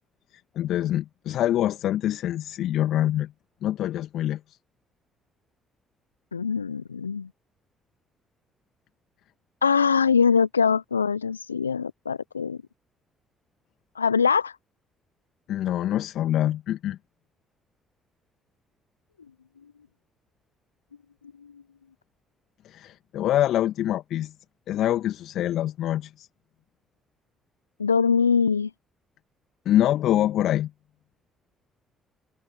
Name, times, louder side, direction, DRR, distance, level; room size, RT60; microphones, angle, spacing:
voice 1, 0.3-3.3 3.6-4.6 15.5-17.0 22.6-24.3 24.7-26.3 29.7-30.7, left 12 dB, 60° left, 2.0 m, -25 dB
voice 2, 6.3-7.3 9.6-12.6 13.9-14.6 27.8-28.7, left 6 dB, 85° left, 0.8 m, -22 dB
figure-of-eight pair, 45°, 0 cm